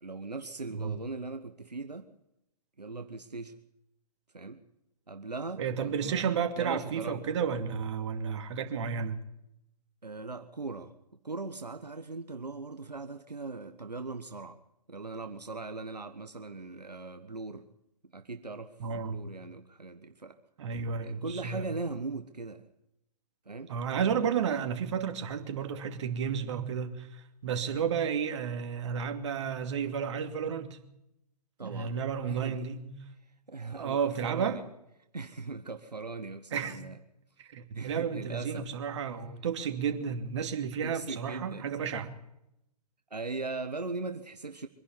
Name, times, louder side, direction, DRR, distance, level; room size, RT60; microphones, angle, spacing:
voice 1, 0.0-2.1 2.8-3.5 4.3-4.6 5.1-7.2 10.0-10.9 11.2-14.6 14.9-17.7 18.1-18.7 19.1-20.4 21.0-22.6 23.5-23.7 31.6-32.7 33.5-34.6 35.1-37.0 37.7-38.7 40.8-41.7 43.1-44.7, right 3 dB, 80° right, 1.4 m, -39 dB
voice 2, 5.6-9.2 18.8-19.2 20.6-21.6 23.7-30.8 31.6-32.9 33.8-34.6 36.5-36.8 37.5-42.1, right 7 dB, 45° right, 2.7 m, -32 dB
24.5 x 11.5 x 9.7 m
figure-of-eight pair, 125°, 20 cm